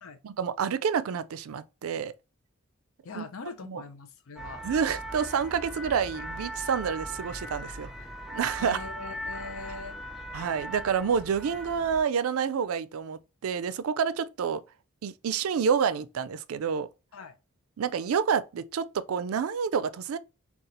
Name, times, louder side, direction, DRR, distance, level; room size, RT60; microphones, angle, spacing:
voice 1, 0.2-2.1 3.1-3.3 3.6-3.8 4.6-7.9 8.3-8.8 10.3-14.6 15.0-16.9 17.8-20.2, right 7 dB, 80° right, 0.4 m, -28 dB
voice 2, 3.0-4.6 8.6-10.0 17.1-17.4, left 4 dB, 75° left, 0.5 m, -42 dB
sound 1, 4.4-12.0, equal, ahead, 0.5 m, -39 dB
3.9 x 2.4 x 4.1 m
head